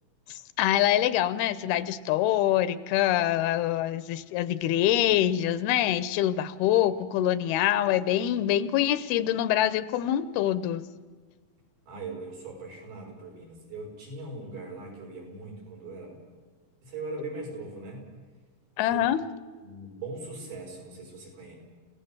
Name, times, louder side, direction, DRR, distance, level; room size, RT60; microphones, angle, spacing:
voice 1, 0.3-10.8 18.8-19.2, left 12 dB, 85° left, 15 dB, 2.8 m, -25 dB
voice 2, 11.9-16.2 16.8-18.1 18.9-19.0 19.6-21.6, right 3 dB, 75° right, -1 dB, 7.8 m, -40 dB
29.5 x 17.5 x 7.3 m, 1.4 s
omnidirectional pair, 4.4 m